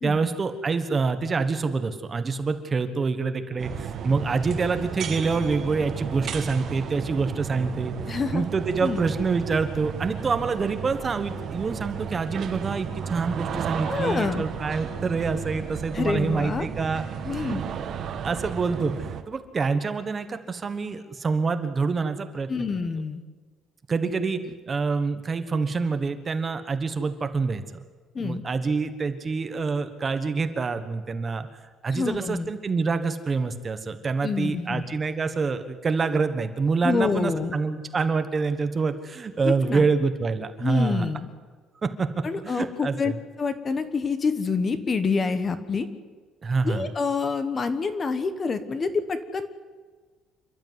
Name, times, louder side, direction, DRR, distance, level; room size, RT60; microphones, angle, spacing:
voice 1, 0.0-7.9 8.3-17.0 17.3-17.6 18.2-22.5 23.9-24.4 24.7-27.6 28.2-31.5 31.8-41.1 41.8-42.1 42.4-43.1 46.4-46.9, right 4 dB, 25° right, 9 dB, 1.2 m, -26 dB
sound 1, 3.6-19.2, right 7 dB, 45° right, 1.6 m, -33 dB
voice 2, 8.1-8.4 8.8-9.0 13.9-14.4 15.9-16.7 17.2-17.6 22.5-23.2 28.1-28.4 31.9-32.5 34.2-34.8 36.8-37.6 39.4-39.9 40.6-41.3 42.2-43.1 43.4-45.9 46.6-49.5, left 4 dB, 25° left, 10 dB, 1.2 m, -27 dB
28.0 x 12.0 x 9.5 m, 1.4 s
cardioid pair, 175°, 0 cm